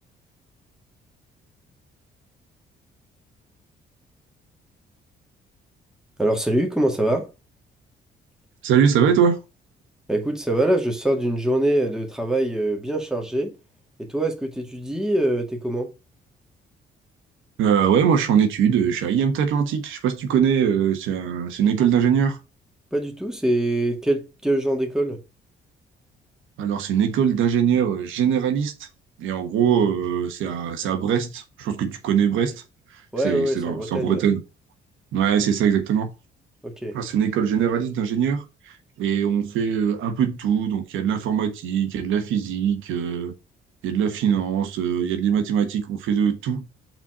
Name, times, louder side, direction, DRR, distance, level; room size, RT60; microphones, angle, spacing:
voice 1, 6.2-7.3 10.1-13.5 14.0-15.9 22.9-25.2 33.1-34.2 36.6-36.9, right 1 dB, 5° right, 2.1 m, -24 dB
voice 2, 8.6-9.4 17.6-22.4 26.6-28.9 29.2-32.6 33.2-34.4 35.1-36.1 36.9-43.3 43.8-46.6, right 8 dB, 85° right, 1.3 m, -22 dB
5.8 x 4.4 x 5.5 m
cardioid pair, 90°, 20 cm